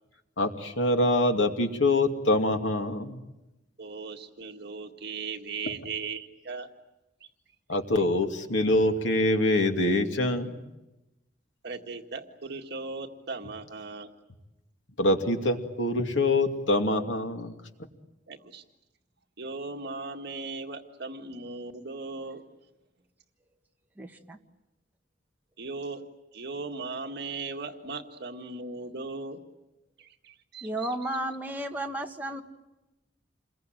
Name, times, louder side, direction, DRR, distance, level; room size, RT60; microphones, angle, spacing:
voice 1, 0.4-3.2 7.7-10.6 15.0-17.5, left 2 dB, 90° left, 5 dB, 2.6 m, -25 dB
voice 2, 3.8-6.7 11.6-14.1 18.3-18.6 19.4-22.4 25.6-26.0 26.3-29.4 30.0-30.9, right 4 dB, 60° right, 4 dB, 1.9 m, -38 dB
voice 3, 24.0-24.4 30.6-32.4, right 1 dB, 10° right, 2 dB, 1.8 m, -33 dB
28.5 x 22.0 x 9.2 m, 0.99 s
head